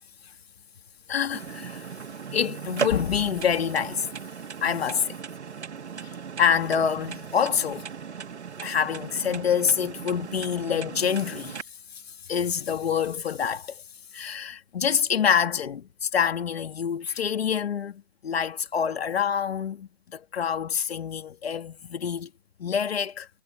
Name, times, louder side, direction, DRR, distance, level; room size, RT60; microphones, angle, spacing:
voice 1, 1.1-1.9 2.3-4.1 4.6-5.1 6.0-6.1 6.4-7.9 8.6-11.6 11.9-13.8 14.1-22.3 22.6-23.3, left 7 dB, 60° left, 2.3 m, -26 dB
sound 1, 1.3-11.6, right 7 dB, 70° right, 1.9 m, -37 dB
hypercardioid pair, 145°, 35 cm